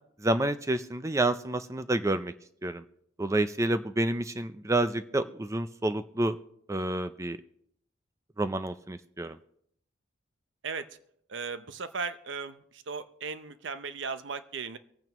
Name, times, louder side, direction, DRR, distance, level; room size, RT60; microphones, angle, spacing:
voice 1, 0.2-2.3 2.6-2.8 3.2-6.4 6.7-7.4 8.4-9.4, right 1 dB, 15° right, 10 dB, 0.5 m, -29 dB
voice 2, 10.6-11.0 11.3-14.8, right 5 dB, 70° right, 11 dB, 0.7 m, -37 dB
24.0 x 9.1 x 3.0 m, 0.70 s
head